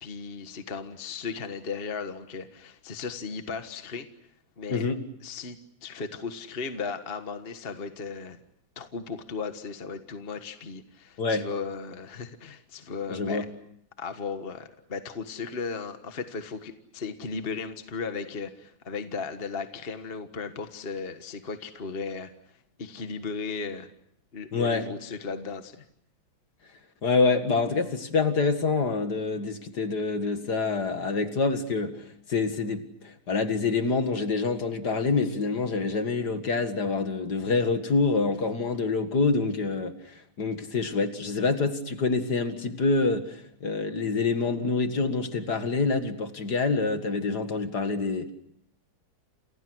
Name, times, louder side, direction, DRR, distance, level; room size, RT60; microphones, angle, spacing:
voice 1, 0.0-4.1 4.6-4.9 5.2-8.4 8.7-13.5 14.0-22.3 22.8-23.9 24.3-25.8, left 5 dB, 30° left, 8 dB, 1.5 m, -36 dB
voice 2, 13.1-13.4 24.5-24.9 27.0-48.3, left 4 dB, 55° left, 8 dB, 2.4 m, -26 dB
30.0 x 28.5 x 6.3 m, 0.71 s
omnidirectional pair, 2.2 m